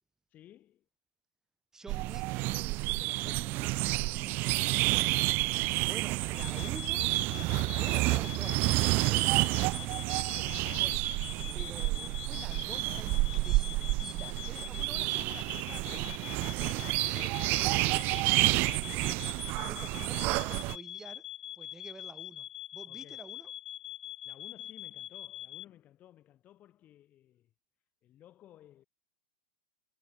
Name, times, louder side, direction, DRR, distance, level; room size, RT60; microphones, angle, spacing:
voice 1, 0.3-0.9 3.0-4.6 9.7-10.0 11.4-11.7 14.3-14.4 19.9-20.1 22.9-23.3 24.2-27.5 28.0-28.8, left 12 dB, 35° left, 4.5 m, -57 dB
voice 2, 1.7-3.7 5.8-9.4 9.7-16.6 17.0-17.4 18.4-21.3 21.6-23.5, right 3 dB, 10° right, 7.1 m, -50 dB
sound 1, 1.9-20.8, right 23 dB, 45° right, 0.6 m, -30 dB
sound 2, 6.3-25.7, left 13 dB, 70° left, 0.3 m, -44 dB
hypercardioid pair, 105°, 5 cm